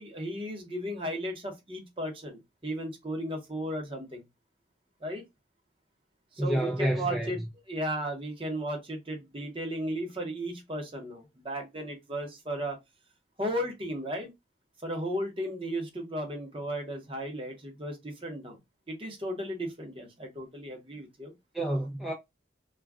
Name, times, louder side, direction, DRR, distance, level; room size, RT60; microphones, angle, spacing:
voice 1, 0.0-4.2 5.0-5.2 6.3-7.4 7.7-12.8 13.4-14.3 14.8-18.6 18.9-21.3, equal, 30° right, 0.8 m, -35 dB
voice 2, 6.4-7.4 21.5-22.1, right 1 dB, ahead, 0.4 m, -29 dB
2.3 x 2.2 x 3.4 m
head